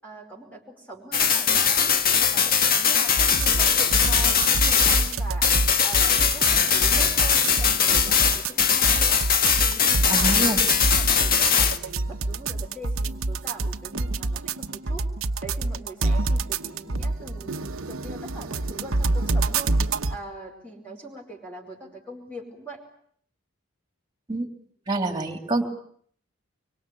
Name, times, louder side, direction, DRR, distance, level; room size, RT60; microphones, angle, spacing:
voice 1, 0.0-1.9 2.2-5.5 5.8-9.2 9.6-15.0 15.4-19.8 20.1-22.8, right 1 dB, 10° left, -2 dB, 5.2 m, -41 dB
sound 1, 1.1-5.2 5.4-11.8, left 7 dB, 45° left, 1.6 m, -21 dB
sound 2, 3.2-20.2, right 3 dB, 70° right, 1.1 m, -27 dB
voice 2, 10.1-10.6 24.3-24.5 24.9-25.6, right 2 dB, 20° right, 6 dB, 3.2 m, -26 dB
25.0 x 24.5 x 8.5 m, 0.62 s
head